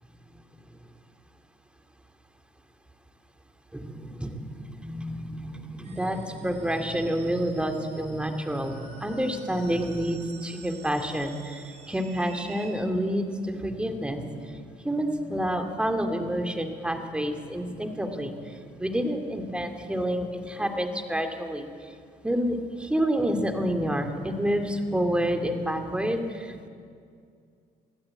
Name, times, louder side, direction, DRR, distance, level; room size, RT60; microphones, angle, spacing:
voice 1, 3.7-14.4 14.8-18.3 18.8-21.7 22.2-26.7, equal, 5° right, 5 dB, 2.5 m, -29 dB
sound 1, 5.8-12.7, right 4 dB, 40° right, 4.4 m, -50 dB
23.0 x 15.5 x 8.9 m, 2.2 s
cardioid pair, 110°, 17 cm